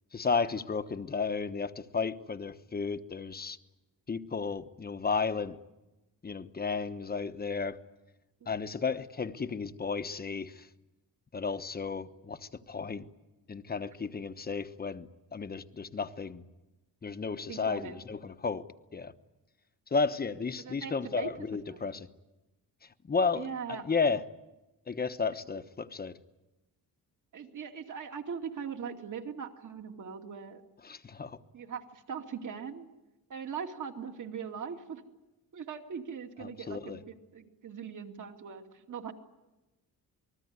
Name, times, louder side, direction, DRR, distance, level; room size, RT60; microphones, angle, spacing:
voice 1, 0.1-3.6 4.1-5.6 6.2-7.8 8.5-10.7 11.3-13.0 13.5-16.5 17.0-18.6 18.9-19.1 19.9-22.1 23.0-23.5 23.8-24.2 24.9-26.2 30.8-31.4 36.4-37.0, left 5 dB, 25° left, 10 dB, 1.1 m, -33 dB
voice 2, 17.5-18.1 20.6-21.3 21.7-21.8 23.3-23.8 27.3-30.6 31.5-32.9 33.3-35.0 35.5-39.1, right 6 dB, 50° right, 4 dB, 2.5 m, -40 dB
28.0 x 20.5 x 9.6 m, 1.0 s
cardioid pair, 145°, 37 cm